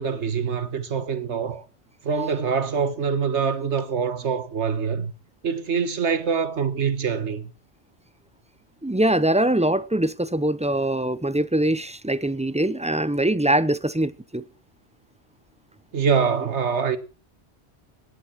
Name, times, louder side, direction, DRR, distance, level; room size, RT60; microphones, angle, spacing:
voice 1, 0.0-1.6 2.0-5.1 5.4-7.5 15.9-17.0, right 6 dB, 85° right, 1.7 m, -24 dB
voice 2, 8.8-14.4, right 1 dB, 10° right, 0.5 m, -23 dB
17.5 x 11.0 x 4.6 m
omnidirectional pair, 1.1 m